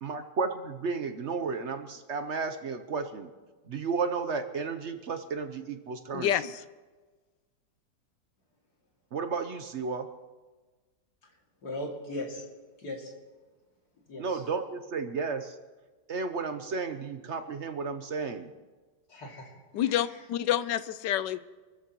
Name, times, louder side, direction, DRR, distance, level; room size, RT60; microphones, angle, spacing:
voice 1, 0.0-3.3 3.7-6.3 9.1-10.1 14.2-15.6 16.1-18.5, right 5 dB, 55° right, 8 dB, 0.9 m, -33 dB
voice 2, 6.1-6.6 19.7-21.4, left 11 dB, 80° left, 14 dB, 1.3 m, -28 dB
voice 3, 11.6-12.4 12.8-13.1 14.1-14.4 19.1-19.9, left 1 dB, 60° left, -1 dB, 3.0 m, -38 dB
27.5 x 13.5 x 3.0 m, 1.3 s
omnidirectional pair, 1.9 m